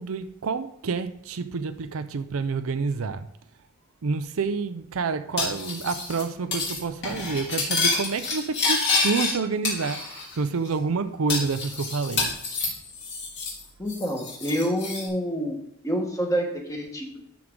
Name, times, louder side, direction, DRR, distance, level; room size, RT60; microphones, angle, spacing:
voice 1, 0.0-3.3 4.0-12.3, right 4 dB, 70° right, 0.5 m, -28 dB
Cutlery silverware, 5.4-6.2 6.5-6.8 7.0-9.3 9.6-10.4 10.6-10.7 11.3-13.6 13.9-15.1, left 3 dB, 50° left, 2.9 m, -28 dB
voice 2, 13.8-15.6 15.8-17.2, equal, 15° left, 1.5 m, -27 dB
12.0 x 4.8 x 3.8 m
head